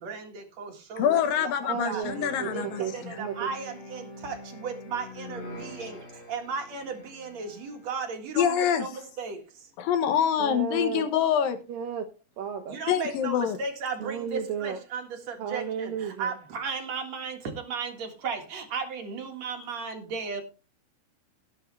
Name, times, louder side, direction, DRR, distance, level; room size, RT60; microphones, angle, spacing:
voice 1, 0.0-2.0 2.5-6.0 6.3-9.4 12.7-20.4, right 5 dB, 50° right, 2.4 m, -35 dB
voice 2, 1.0-3.1 8.4-8.8 9.8-11.6 12.9-13.6, left 9 dB, 65° left, 2.6 m, -25 dB
voice 3, 1.7-3.3 10.4-11.1 11.7-12.1 12.4-12.8 14.0-14.8 15.4-16.3, right 7 dB, 70° right, 2.2 m, -33 dB
sound 1, 2.0-8.0, left 1 dB, 45° left, 5.5 m, -44 dB
17.5 x 7.8 x 3.3 m
omnidirectional pair, 4.9 m